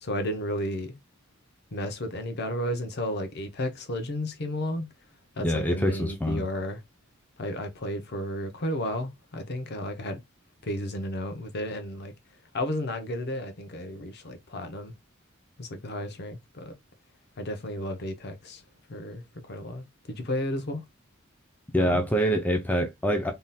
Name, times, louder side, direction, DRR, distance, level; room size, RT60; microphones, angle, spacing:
voice 1, 0.0-1.0 1.7-4.9 5.4-6.8 7.4-10.2 10.6-12.1 12.5-14.9 15.6-16.7 17.4-18.6 18.9-20.8 21.8-22.0, left 1 dB, 55° left, 0.7 m, -33 dB
voice 2, 5.4-6.4 21.7-23.3, equal, 10° left, 0.5 m, -25 dB
3.6 x 2.7 x 2.3 m
head